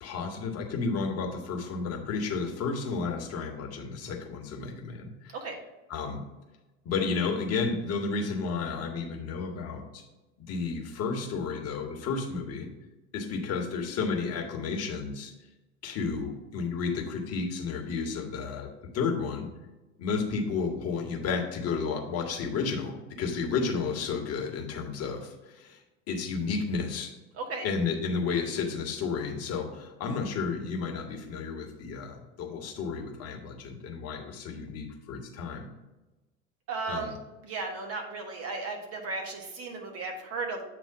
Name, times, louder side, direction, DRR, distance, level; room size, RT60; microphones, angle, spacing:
voice 1, 0.0-5.4 5.9-6.2 6.8-10.0 10.4-12.7 13.1-15.3 15.8-19.5 20.0-25.8 26.1-27.1 27.6-35.7 36.9-37.1, left 4 dB, 35° left, 2 dB, 1.4 m, -32 dB
voice 2, 36.7-37.1 37.4-40.6, right 3 dB, 35° right, 2 dB, 1.6 m, -35 dB
7.8 x 3.0 x 5.8 m, 1.1 s
figure-of-eight pair, 80°, 40 cm